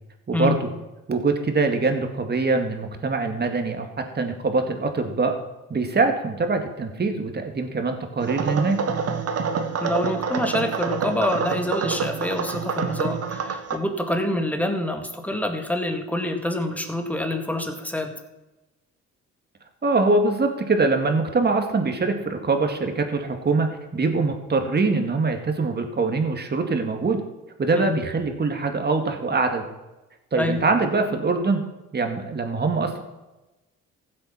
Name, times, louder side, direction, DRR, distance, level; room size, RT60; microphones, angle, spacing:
voice 1, 0.3-0.7 1.1-3.9 4.1-5.3 5.7-8.8 19.8-23.7 23.9-27.2 27.6-29.6 30.3-31.6 31.9-33.0, right 3 dB, 35° right, 5 dB, 2.2 m, -23 dB
sound 1, 8.2-13.8, right 5 dB, 50° right, 1.3 m, -27 dB
voice 2, 9.8-18.1 27.7-28.0 30.4-30.6, left 1 dB, 5° left, 5 dB, 2.0 m, -26 dB
15.5 x 7.8 x 5.8 m, 1.0 s
cardioid pair, 90°, 30 cm